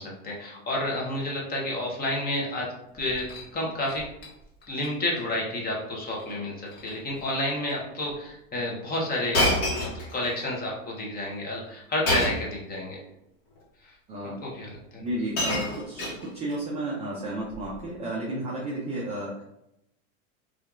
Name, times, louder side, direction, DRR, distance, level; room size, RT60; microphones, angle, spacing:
voice 1, 0.0-2.7 2.9-3.3 3.5-4.0 4.7-9.4 9.7-13.0 13.8-13.9 14.4-15.0, left 1 dB, 20° left, -3 dB, 0.8 m, -30 dB
Shatter, 3.0-3.5 3.8-4.3 4.6-4.9 5.1-5.2 6.1-6.3 6.7-6.9 7.7-7.8 9.3-10.4 12.1-12.5 13.6-13.7 14.7-14.8 15.1-16.6 17.5-17.8, left 1 dB, 45° left, 1.2 m, -28 dB
voice 2, 14.1-14.4 15.0-19.4, right 1 dB, 15° right, -5 dB, 0.3 m, -32 dB
2.6 x 2.4 x 2.4 m, 0.82 s
hypercardioid pair, 105°, 42 cm